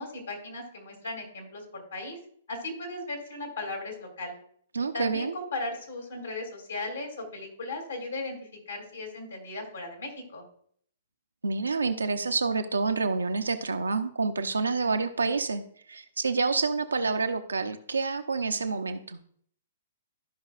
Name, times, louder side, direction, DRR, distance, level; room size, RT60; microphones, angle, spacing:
voice 1, 0.0-2.2 2.5-4.3 4.9-8.4 8.7-10.4, left 2 dB, 80° left, 2 dB, 2.6 m, -37 dB
voice 2, 4.7-5.3 11.4-15.6 15.9-19.2, right 4 dB, 90° right, 7 dB, 0.7 m, -28 dB
13.0 x 5.5 x 2.4 m, 0.63 s
hypercardioid pair, 120°, 0 cm